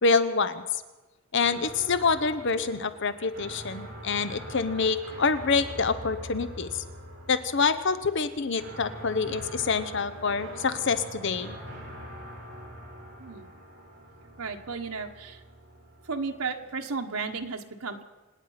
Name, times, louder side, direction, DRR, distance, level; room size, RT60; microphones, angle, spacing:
voice 1, 0.0-0.8 1.3-6.8 7.3-11.5, left 4 dB, 55° left, 13 dB, 0.7 m, -26 dB
sound 1, 1.4-17.4, equal, 50° right, 7.1 m, -44 dB
voice 2, 14.4-15.4 16.0-18.0, right 4 dB, 85° right, 4 dB, 1.2 m, -34 dB
26.5 x 9.2 x 5.7 m, 1.2 s
head